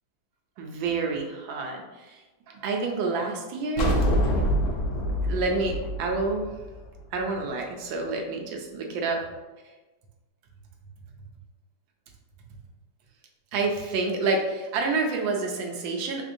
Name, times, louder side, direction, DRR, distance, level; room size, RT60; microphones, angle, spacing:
voice 1, 0.6-2.2 2.5-4.0 5.3-6.5 7.1-9.2 13.5-16.2, right 3 dB, 85° right, 2 dB, 1.3 m, -28 dB
sound 1, 3.8-7.2, equal, 70° left, 0.7 m, -25 dB
3.5 x 3.4 x 2.5 m, 1.2 s
omnidirectional pair, 2.0 m